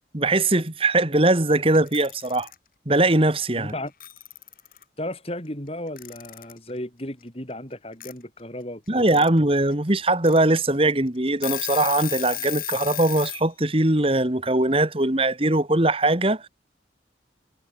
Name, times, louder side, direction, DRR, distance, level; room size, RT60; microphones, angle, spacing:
voice 1, 0.1-2.5 2.9-3.7 8.9-16.5, right 2 dB, 30° right, 2.0 m, -21 dB
Alarm / Clock, 1.7-2.5 3.7-3.8 4.0-4.8 6.0-6.6 8.0-8.1 8.9-9.3 9.7-9.8 10.2-10.4 10.9-11.0 11.3-13.4, left 14 dB, 50° left, 4.0 m, -33 dB
voice 2, 3.5-3.9 5.0-9.3, left 1 dB, 30° left, 5.3 m, -35 dB
head